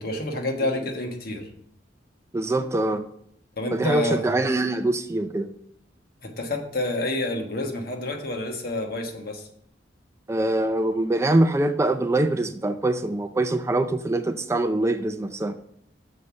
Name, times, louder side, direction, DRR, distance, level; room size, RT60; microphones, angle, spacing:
voice 1, 0.0-1.5 3.6-4.3 6.2-9.5, left 2 dB, 55° left, 1.3 m, -28 dB
voice 2, 2.3-3.1 3.7-5.5 10.3-15.6, right 2 dB, 15° right, 0.3 m, -24 dB
6.6 x 5.3 x 6.8 m
head